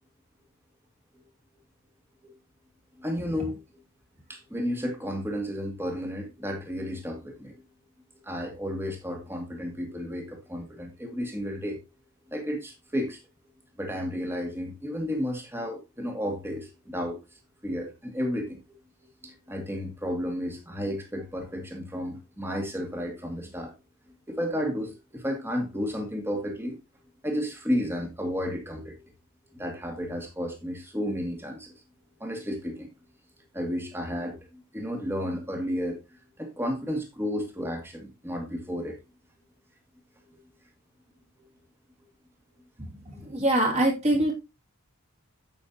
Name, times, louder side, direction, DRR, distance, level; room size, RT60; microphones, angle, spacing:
voice 1, 3.0-3.6 4.3-7.6 8.2-11.8 12.3-13.2 13.8-17.2 17.6-18.6 19.2-23.7 24.3-26.7 27.2-29.0 29.5-31.7 32.2-32.9 33.5-36.0 36.4-39.0 43.1-43.3, equal, 10° right, 2.2 m, -32 dB
voice 2, 43.2-44.3, right 1 dB, 30° right, 3.1 m, -23 dB
8.9 x 7.8 x 2.8 m
head